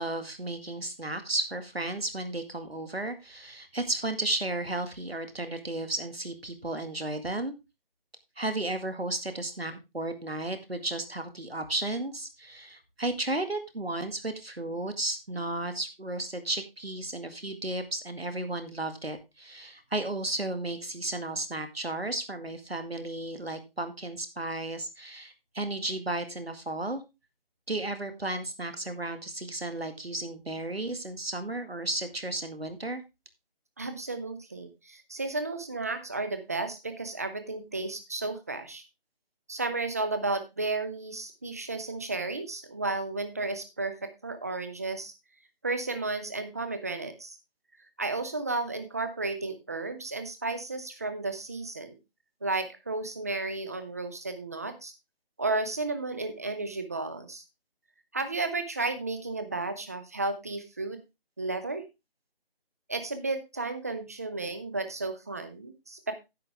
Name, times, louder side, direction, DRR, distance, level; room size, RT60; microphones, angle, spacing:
voice 1, 0.0-7.5 8.4-27.0 27.7-33.0, right 2 dB, 85° right, 8 dB, 2.0 m, -34 dB
voice 2, 33.8-38.8 39.5-45.1 45.6-47.4 48.0-52.0 52.4-54.9 55.4-57.4 58.1-61.0 61.4-61.8 62.9-66.1, right 3 dB, 15° right, 9 dB, 0.7 m, -33 dB
10.5 x 8.5 x 3.5 m, 0.25 s
figure-of-eight pair, 155°, 30 cm